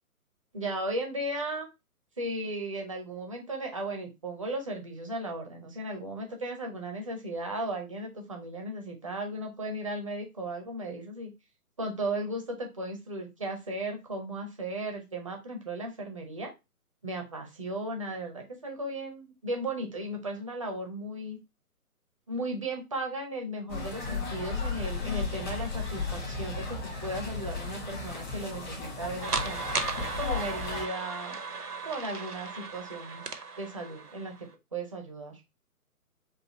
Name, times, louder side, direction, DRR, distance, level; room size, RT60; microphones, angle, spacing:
voice 1, 0.5-1.7 2.2-11.3 11.8-16.5 17.0-21.4 22.3-29.6 30.2-31.4 31.8-33.2 33.6-34.3 34.7-35.4, right 1 dB, 20° right, 3 dB, 0.6 m, -36 dB
sound 1, 23.7-30.8, left 4 dB, 30° left, 1.6 m, -35 dB
sound 2, 29.2-34.5, right 4 dB, 90° right, 0.8 m, -36 dB
4.0 x 2.6 x 4.0 m, 0.23 s
figure-of-eight pair, 135°, 45 cm